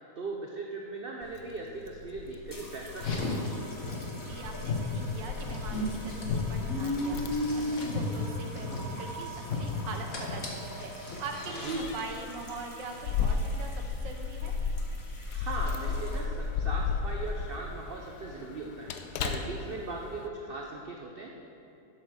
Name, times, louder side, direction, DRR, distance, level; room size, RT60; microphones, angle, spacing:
voice 1, 0.2-3.4 11.6-11.8 15.3-18.9 19.2-21.3, right 3 dB, 60° right, 0 dB, 0.5 m, -38 dB
Keys jangling, 1.2-20.3, left 5 dB, 70° left, 1.1 m, -36 dB
sound 1, 2.5-16.5 17.4-17.7, equal, 15° left, 0.7 m, -47 dB
Car, 2.9-11.9, left 2 dB, 45° left, 1.4 m, -34 dB
voice 2, 4.2-14.5, right 4 dB, 80° right, 3 dB, 1.6 m, -42 dB
8.0 x 7.7 x 6.2 m, 2.6 s
omnidirectional pair, 1.9 m